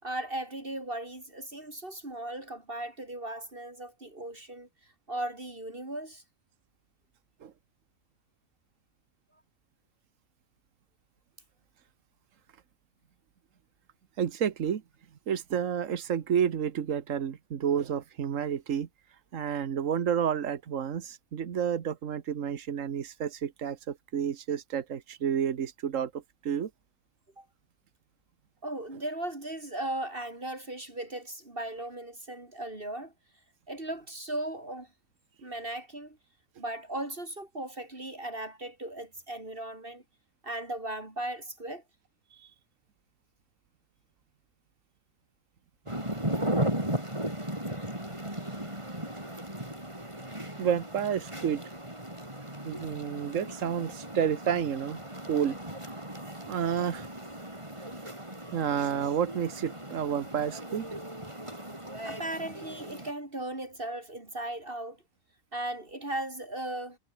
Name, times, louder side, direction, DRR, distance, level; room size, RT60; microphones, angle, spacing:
voice 1, 0.0-4.7 5.1-6.2 27.4-27.5 28.6-33.1 33.7-34.9 35.4-36.2 36.6-40.0 40.4-41.8 62.0-65.0 65.5-67.0, right 1 dB, 45° right, 4.3 m, -37 dB
voice 2, 14.2-14.8 15.3-18.9 19.3-26.7 50.6-51.6 52.6-55.0 55.3-55.6 56.5-57.1 58.5-60.9, right 8 dB, 80° right, 1.5 m, -30 dB
sound 1, 45.9-63.1, right 1 dB, 20° right, 5.9 m, -37 dB
omnidirectional pair, 1.3 m